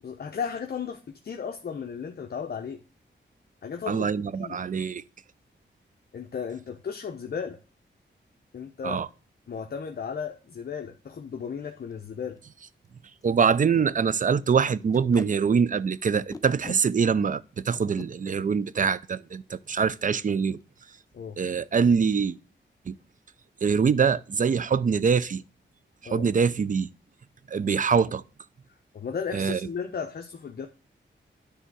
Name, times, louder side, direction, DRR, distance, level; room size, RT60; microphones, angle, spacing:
voice 1, 0.0-2.8 3.6-4.1 4.4-4.6 6.1-7.6 8.5-9.0 9.5-12.4 21.1-21.4 26.0-26.3 28.9-30.7, left 6 dB, 55° left, 0.8 m, -35 dB
voice 2, 3.9-5.0 8.8-9.1 13.2-20.6 21.4-22.4 22.9-23.0 23.6-25.4 26.1-26.9 27.5-28.2 29.3-29.6, right 6 dB, 40° right, 0.5 m, -24 dB
Packing tape duct tape, 11.3-11.5 11.9-12.0 12.2-12.4 12.8-12.9 13.2-13.4 13.7-13.9 14.9-15.3 16.3-16.8 17.7-18.1 19.6-19.8 20.2-20.3 20.6-21.0, left 3 dB, 20° left, 0.6 m, -41 dB
10.0 x 3.4 x 6.2 m
wide cardioid pair, 130°, 20 cm